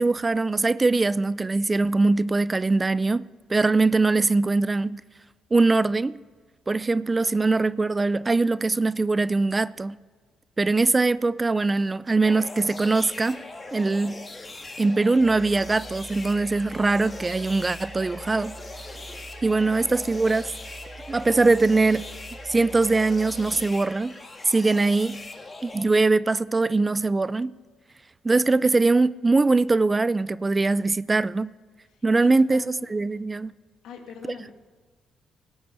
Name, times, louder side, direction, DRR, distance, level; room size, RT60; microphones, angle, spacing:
voice 1, 0.0-5.0 5.5-6.1 6.7-10.0 10.6-13.4 13.7-14.3 14.8-18.5 19.4-20.5 21.1-22.0 22.5-24.1 24.5-25.2 25.6-27.5 28.2-31.5 32.0-33.5, right 3 dB, 25° right, 0.3 m, -22 dB
sound 1, 12.2-25.8, left 2 dB, 25° left, 1.7 m, -41 dB
sound 2, 15.2-23.9, right 3 dB, 5° right, 1.4 m, -44 dB
voice 2, 31.9-33.2 33.8-34.5, left 6 dB, 90° left, 2.0 m, -45 dB
17.0 x 5.9 x 8.2 m
cardioid pair, 90°, 0 cm